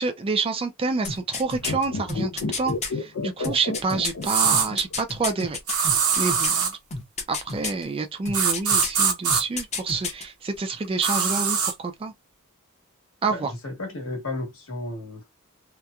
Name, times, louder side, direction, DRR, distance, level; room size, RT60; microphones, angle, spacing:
voice 1, 0.0-5.6 6.2-6.7 7.3-12.1 13.2-13.5, right 4 dB, 25° right, 0.3 m, -28 dB
sound 1, 1.0-2.9 3.4-6.6 6.9-7.8 8.3-9.0 9.3-10.2 10.5-10.6, left 4 dB, 30° left, 0.7 m, -31 dB
sound 2, 1.6-5.0 5.2-5.3, left 3 dB, 90° left, 0.5 m, -31 dB
sound 3, 4.2-4.7 5.7-6.7 8.3-9.4 11.0-11.7, right 6 dB, 80° right, 0.9 m, -22 dB
voice 2, 13.3-15.3, left 2 dB, 65° left, 1.2 m, -33 dB
2.8 x 2.1 x 2.3 m
head